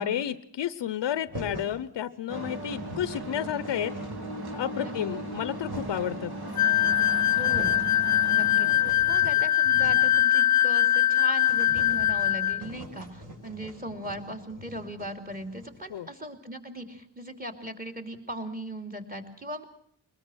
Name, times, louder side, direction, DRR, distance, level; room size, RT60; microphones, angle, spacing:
voice 1, 0.0-3.9 4.5-6.3 15.9-16.1, left 10 dB, 75° left, 15 dB, 0.8 m, -31 dB
sound 1, 1.3-1.8 2.4-2.5 2.7-3.3 3.6-4.5 5.2-6.1 6.9-7.0 7.3-7.9 8.3-10.2 10.5-10.6 10.9-11.0 11.4-15.9, equal, 45° right, 6.3 m, -43 dB
sound 2, 2.3-8.9, right 2 dB, 60° right, 3.3 m, -37 dB
voice 2, 4.8-5.2 7.3-7.8 8.3-19.6, right 1 dB, 20° right, 6 dB, 3.0 m, -38 dB
sound 3, 6.6-12.6, left 11 dB, 45° left, 0.9 m, -22 dB
22.5 x 21.0 x 6.3 m, 0.65 s
wide cardioid pair, 115°, 43 cm